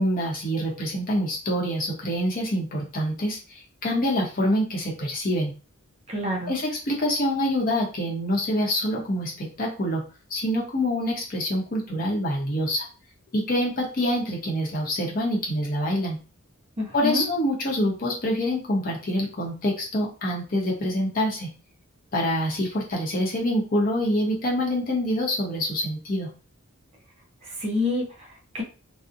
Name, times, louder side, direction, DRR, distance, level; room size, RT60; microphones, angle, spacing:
voice 1, 0.0-5.5 6.5-10.0 10.3-12.9 13.3-16.2 16.9-21.5 22.1-26.3, equal, 40° left, -1 dB, 0.7 m, -26 dB
voice 2, 6.1-6.5 16.8-17.3 27.4-28.6, left 2 dB, 25° right, 1 dB, 0.4 m, -28 dB
2.6 x 2.0 x 2.4 m, 0.35 s
head